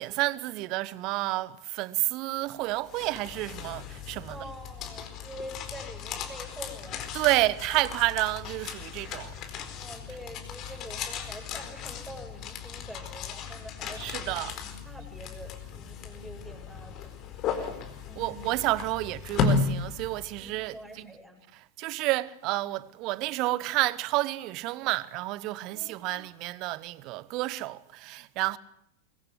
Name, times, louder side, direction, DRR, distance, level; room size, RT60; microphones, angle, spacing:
voice 1, 0.0-4.4 7.1-9.3 14.0-14.5 17.6-17.7 18.2-21.1 21.8-28.6, right 19 dB, 40° right, 1.2 m, -30 dB
sound 1, 2.6-20.7, left 5 dB, 35° left, 4.4 m, -35 dB
voice 2, 4.3-7.1 9.7-17.1 18.0-18.6 20.4-21.4 25.7-26.2, equal, 5° right, 8.0 m, -46 dB
24.5 x 23.0 x 8.2 m
figure-of-eight pair, 90°, 0 cm